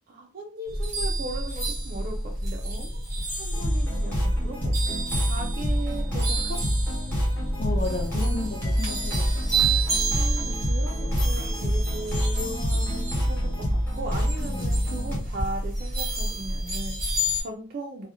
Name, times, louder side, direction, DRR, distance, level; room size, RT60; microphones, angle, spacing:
voice 1, 0.1-3.0 3.4-6.6 10.1-18.1, right 2 dB, 45° right, -1 dB, 0.3 m, -38 dB
sound 1, 0.7-17.4, right 1 dB, 15° right, 0.7 m, -29 dB
sound 2, 3.5-15.2, equal, 10° left, 0.9 m, -27 dB
voice 2, 7.6-9.8 10.9-11.5 14.4-14.8, left 3 dB, 35° left, 0 dB, 0.4 m, -35 dB
2.4 x 2.0 x 2.8 m, 0.39 s
head